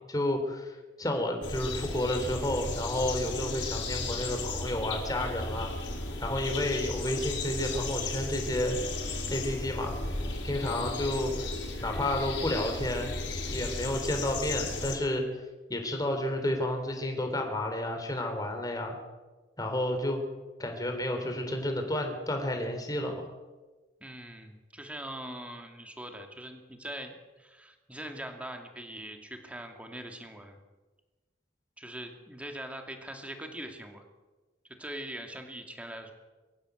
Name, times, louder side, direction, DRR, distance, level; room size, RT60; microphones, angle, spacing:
voice 1, 0.0-5.7 6.2-8.8 9.3-9.9 10.4-11.5 11.8-13.1 13.5-15.2 15.7-19.0 19.6-20.2 20.6-23.3, left 1 dB, 20° left, 4 dB, 3.4 m, -31 dB
sound 1, 1.4-15.0, left 2 dB, 85° left, 5.6 m, -35 dB
voice 2, 24.0-30.6 31.8-34.0 34.8-36.1, right 1 dB, 5° right, 4 dB, 2.5 m, -42 dB
23.0 x 15.5 x 8.0 m, 1.2 s
head